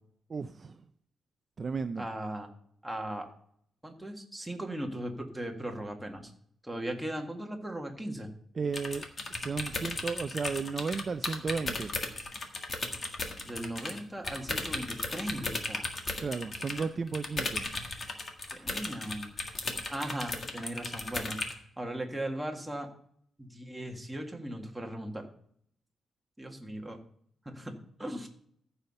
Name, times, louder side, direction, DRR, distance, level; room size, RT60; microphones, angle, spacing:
voice 1, 0.3-0.8 1.6-2.0 8.6-11.9 16.2-17.6, right 5 dB, 35° right, 10 dB, 0.4 m, -34 dB
voice 2, 2.0-2.5 2.8-3.3 3.8-6.3 6.6-8.3 13.4-15.9 18.5-19.3 19.9-21.4 21.8-22.9 23.4-25.3 26.4-27.0 27.5-27.7 28.0-28.3, right 1 dB, 5° right, 2 dB, 1.7 m, -38 dB
sound 1, 8.7-14.0 14.2-21.5, left 3 dB, 35° left, 1.7 m, -36 dB
14.5 x 5.7 x 5.4 m, 0.65 s
cardioid pair, 125°, 0 cm